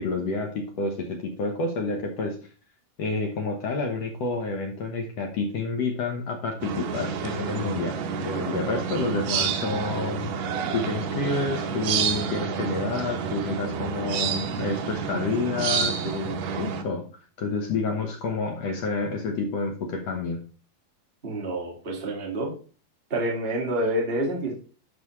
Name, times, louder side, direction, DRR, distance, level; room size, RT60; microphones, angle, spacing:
voice 1, 0.0-2.4 3.0-17.0 17.4-20.4, left 3 dB, 65° left, 2 dB, 1.6 m, -29 dB
sound 1, 6.6-16.8, right 6 dB, 90° right, 1.4 m, -29 dB
voice 2, 21.2-22.5 23.1-24.5, right 1 dB, 30° right, -1 dB, 1.0 m, -28 dB
11.5 x 5.4 x 3.2 m, 0.38 s
omnidirectional pair, 4.4 m